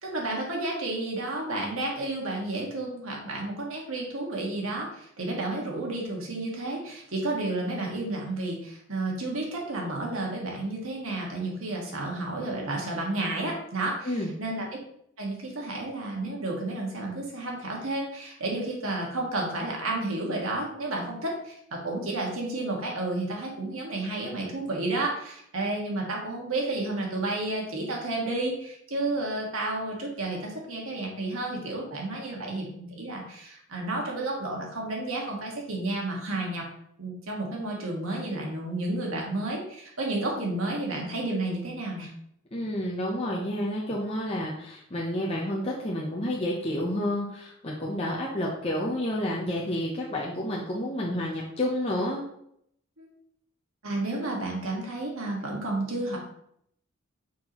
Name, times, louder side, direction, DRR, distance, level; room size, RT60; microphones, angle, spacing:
voice 1, 0.0-14.7 15.2-36.6 37.0-42.1 53.0-53.1 53.8-56.2, right 2 dB, 70° right, -1 dB, 1.8 m, -31 dB
voice 2, 42.5-52.2, left 1 dB, 25° left, -4 dB, 0.8 m, -30 dB
6.0 x 5.8 x 3.0 m, 0.71 s
head